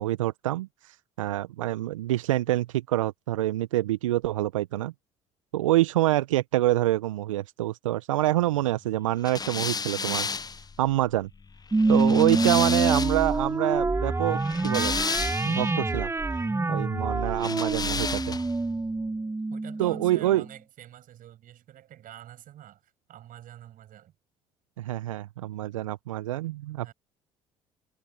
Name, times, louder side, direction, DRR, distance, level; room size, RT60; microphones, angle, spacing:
voice 1, 0.0-4.9 5.5-10.3 10.8-11.3 11.9-15.0 15.4-16.1 16.7-18.4 19.8-20.4 24.8-26.9, right 15 dB, 85° right, 0.8 m, -26 dB
sound 1, 9.2-13.3 14.3-15.7 17.4-18.6, left 5 dB, 25° left, 0.9 m, -32 dB
sound 2, 11.7-20.5, right 3 dB, 15° right, 1.3 m, -26 dB
voice 2, 12.2-13.0 19.5-24.1 25.6-25.8 26.8-26.9, right 12 dB, 55° right, 7.3 m, -47 dB
hypercardioid pair, 55°, 16 cm